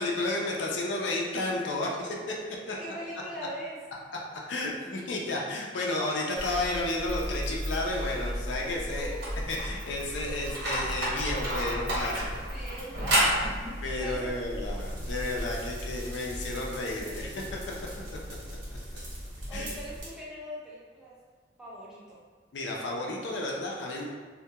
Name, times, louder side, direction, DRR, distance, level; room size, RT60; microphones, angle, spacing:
voice 1, 0.0-2.3 2.7-3.0 4.3-9.1 9.5-12.4 13.8-17.4 19.5-19.7 22.5-24.0, left 2 dB, 80° left, -2 dB, 0.4 m, -32 dB
voice 2, 2.8-3.8 8.9-9.2 9.8-10.0 12.5-13.5 14.0-14.4 17.1-17.8 19.5-21.2 21.6-22.2, equal, 5° right, -8 dB, 0.5 m, -41 dB
sound 1, 6.4-20.1, equal, 65° right, 0.9 m, -33 dB
2.2 x 2.1 x 2.7 m, 1.5 s
head